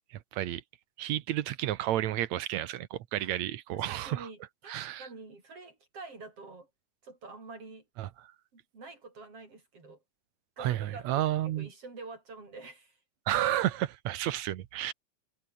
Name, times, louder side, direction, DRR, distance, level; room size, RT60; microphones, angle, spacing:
voice 1, 0.1-0.6 1.0-4.3 4.7-5.1 8.0-8.1 10.6-11.7 13.3-14.9, right 13 dB, 70° right, 2.1 m, -31 dB
voice 2, 3.7-6.7 7.0-7.9 8.5-10.0 10.6-11.3 11.6-13.0, right 3 dB, 45° right, 7.5 m, -47 dB
omnidirectional pair, 3.6 m